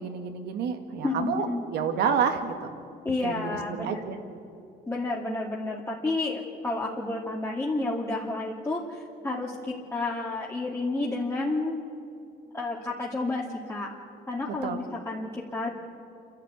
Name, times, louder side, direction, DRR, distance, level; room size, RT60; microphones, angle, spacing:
voice 1, 0.0-1.5 1.7-2.7 3.2-4.2 14.6-14.8, right 7 dB, 75° right, 6 dB, 2.2 m, -29 dB
voice 2, 1.0-1.6 3.0-4.1 4.9-11.8 12.5-13.9 14.3-15.7, left 2 dB, 15° left, -4 dB, 2.3 m, -30 dB
28.5 x 12.0 x 9.3 m, 2.6 s
cardioid pair, 110°, 17 cm